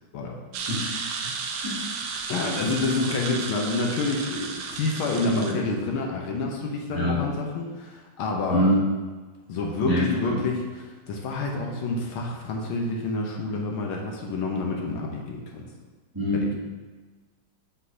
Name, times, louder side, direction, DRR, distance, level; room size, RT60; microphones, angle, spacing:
sound 1, 0.5-5.5, right 5 dB, 70° right, 1.0 m, -33 dB
voice 1, 0.7-1.4 1.6-1.8 5.2-5.6 6.9-7.2 8.5-8.8 9.8-10.4 16.1-16.4, equal, 10° right, -10 dB, 1.7 m, -25 dB
voice 2, 2.3-8.7 9.5-15.7 16.4-16.5, left 3 dB, 75° left, 0 dB, 1.6 m, -28 dB
7.7 x 6.3 x 2.7 m, 1.3 s
omnidirectional pair, 2.4 m